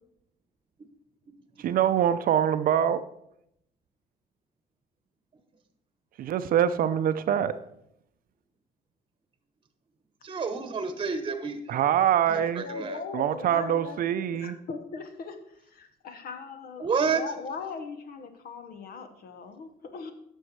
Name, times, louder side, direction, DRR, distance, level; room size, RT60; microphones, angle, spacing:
voice 1, 1.6-3.0 6.2-7.5 11.7-12.6 13.1-14.6, right 10 dB, 60° right, 0.6 m, -24 dB
voice 2, 10.2-11.6 12.3-13.0 16.8-17.2, right 5 dB, 30° right, 1.1 m, -29 dB
voice 3, 12.3-14.0 14.3-20.1, left 5 dB, 60° left, 1.2 m, -39 dB
11.0 x 6.5 x 4.7 m
cardioid pair, 110°, 17 cm